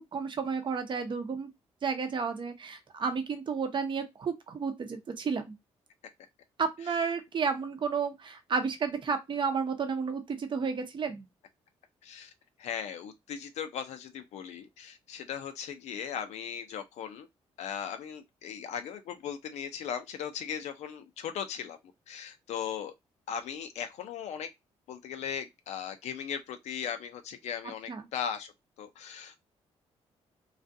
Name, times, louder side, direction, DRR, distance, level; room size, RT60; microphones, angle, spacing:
voice 1, 0.0-1.5 1.8-5.6 6.6-11.3 27.9-28.1, right 5 dB, 45° right, 0.6 m, -32 dB
voice 2, 12.0-12.3 12.6-17.3 17.6-21.8 22.1-22.9 23.3-24.5 24.9-28.5 28.8-29.4, left 8 dB, 80° left, 0.4 m, -38 dB
2.4 x 2.3 x 2.6 m
cardioid pair, 75°, 12 cm